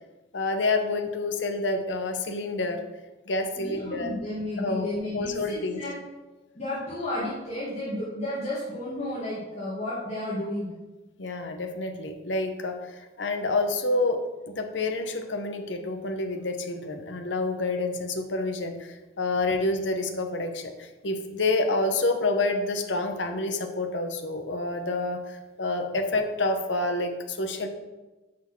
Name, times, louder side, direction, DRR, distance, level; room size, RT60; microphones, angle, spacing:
voice 1, 0.3-2.8 3.3-4.1 4.6-5.8 11.2-14.2 14.5-27.7, left 2 dB, 80° left, 5 dB, 1.0 m, -28 dB
voice 2, 3.6-6.0 6.5-10.7, left 1 dB, 40° left, -9 dB, 2.0 m, -32 dB
6.3 x 6.1 x 6.0 m, 1.2 s
head